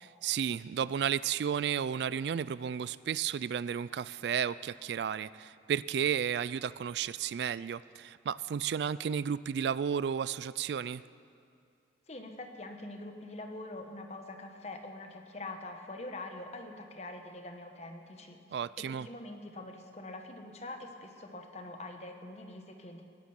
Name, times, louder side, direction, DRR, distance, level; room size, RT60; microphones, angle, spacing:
voice 1, 0.2-11.0 18.5-19.1, right 8 dB, 65° right, 18 dB, 0.3 m, -33 dB
voice 2, 12.1-18.4 18.8-23.0, left 2 dB, 35° left, 5 dB, 1.2 m, -44 dB
19.0 x 11.0 x 5.8 m, 2.4 s
head